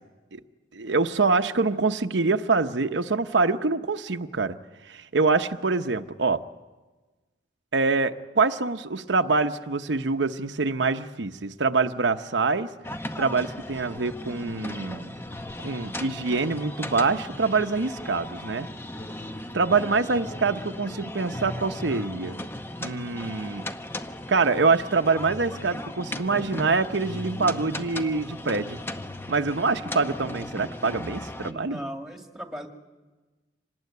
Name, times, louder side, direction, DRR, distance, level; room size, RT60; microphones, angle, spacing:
voice 1, 0.7-4.6 4.9-6.4 7.7-12.7 13.2-15.2 15.6-18.7 19.5-22.4 22.8-23.7 24.3-28.8 29.3-31.8, right 4 dB, 85° right, 7 dB, 0.9 m, -25 dB
sound 1, 12.8-31.5, left 1 dB, 15° left, 0.8 m, -37 dB
voice 2, 31.4-32.7, equal, 5° right, 4 dB, 2.0 m, -37 dB
26.0 x 19.0 x 9.4 m, 1.3 s
head